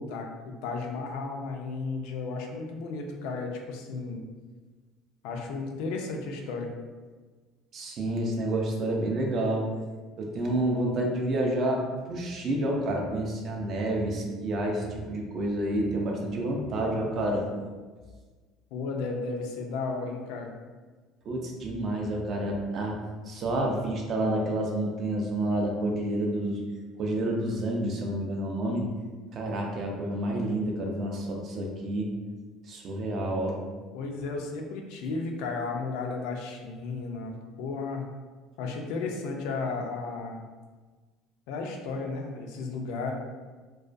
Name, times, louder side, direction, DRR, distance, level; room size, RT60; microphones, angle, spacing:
voice 1, 0.0-4.2 5.2-6.7 18.7-20.5 33.9-38.1 38.6-40.4 41.5-43.1, left 4 dB, 80° left, 2 dB, 0.4 m, -34 dB
voice 2, 7.7-9.7 10.2-17.5 21.2-23.0 23.2-26.6 27.0-28.9 29.3-32.1 32.7-33.6, right 1 dB, 40° right, 0 dB, 0.4 m, -29 dB
2.3 x 2.2 x 2.5 m, 1.4 s
cardioid pair, 150°, 0 cm